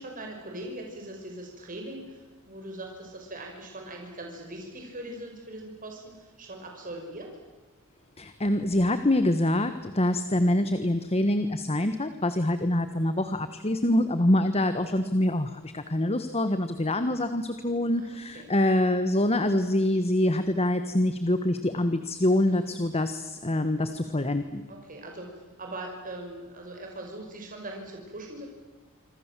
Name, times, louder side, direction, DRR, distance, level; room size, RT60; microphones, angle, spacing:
voice 1, 0.0-7.3 18.0-18.5 22.4-22.8 24.7-28.5, right 1 dB, 40° right, 1 dB, 5.7 m, -41 dB
voice 2, 8.2-24.6, left 1 dB, 30° left, 10 dB, 1.3 m, -25 dB
26.5 x 26.0 x 7.6 m, 1.2 s
head